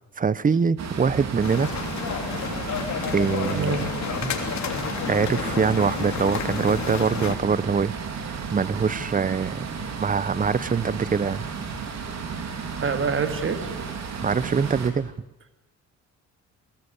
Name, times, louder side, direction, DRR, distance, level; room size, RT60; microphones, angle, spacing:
voice 1, 0.2-1.7 3.1-3.8 4.2-4.3 5.1-9.6 10.0-11.4 14.2-15.1, right 5 dB, 25° right, 19 dB, 0.8 m, -24 dB
sound 1, 0.8-14.9, right 5 dB, 65° right, 3.7 m, -33 dB
sound 2, 1.4-7.3, left 7 dB, 65° left, 3.3 m, -31 dB
voice 2, 3.5-3.9 12.8-13.7, right 5 dB, 40° right, 8 dB, 2.8 m, -26 dB
22.0 x 22.0 x 8.2 m, 0.93 s
cardioid pair, 90°, 30 cm